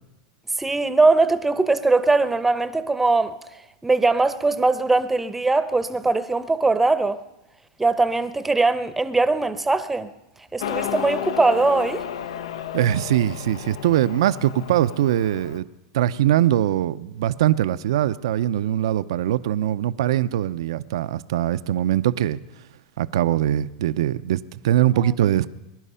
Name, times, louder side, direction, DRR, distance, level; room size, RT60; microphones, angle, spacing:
voice 1, 0.6-3.4 3.8-7.2 7.8-10.1 10.5-12.1 24.9-25.2, right 3 dB, 5° right, 0.7 m, -21 dB
Motorcycle, 10.6-15.6, left 9 dB, 85° left, 0.8 m, -32 dB
voice 2, 12.7-15.7 15.9-22.4 23.0-25.5, right 12 dB, 75° right, 0.6 m, -22 dB
22.0 x 11.0 x 5.6 m
supercardioid pair, 140°, 3 cm